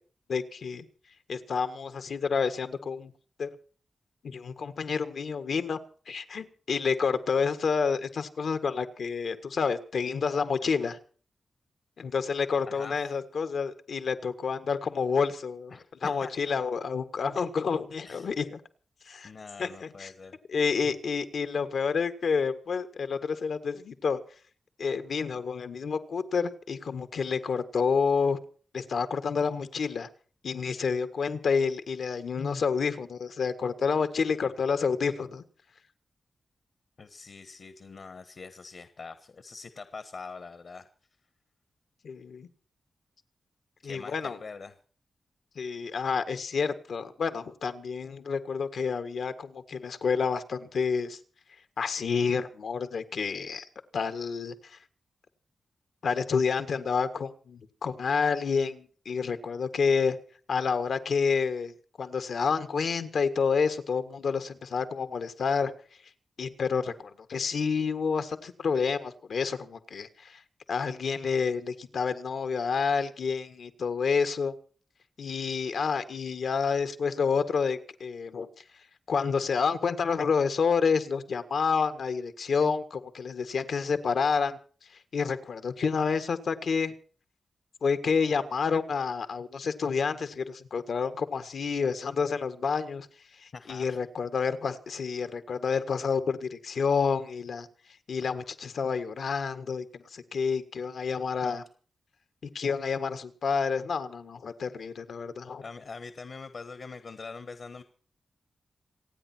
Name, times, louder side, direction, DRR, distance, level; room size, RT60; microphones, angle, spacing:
voice 1, 0.3-0.8 1.3-3.1 3.4-3.5 4.2-5.8 6.1-11.0 12.0-15.8 16.0-18.6 19.1-19.3 19.6-20.1 20.5-24.2 24.8-28.4 28.7-30.1 30.4-35.4 42.0-42.5 43.8-44.4 45.5-51.2 51.8-53.6 53.9-54.5 56.0-60.2 60.5-61.7 62.0-65.7 66.4-70.4 70.7-74.5 75.2-78.5 79.1-84.6 85.1-86.9 87.8-93.1 93.4-97.7 98.1-99.8 100.1-101.6 102.4-105.6, left 5 dB, 75° left, 10 dB, 1.6 m, -29 dB
voice 2, 15.7-16.3 17.4-17.5 18.0-18.3 19.2-20.4 32.3-32.6 37.0-40.9 43.8-44.7 93.5-94.0 101.4-101.6 105.6-107.8, left 4 dB, 55° left, 11 dB, 1.3 m, -43 dB
27.5 x 9.5 x 4.5 m, 0.42 s
wide cardioid pair, 135°, 0 cm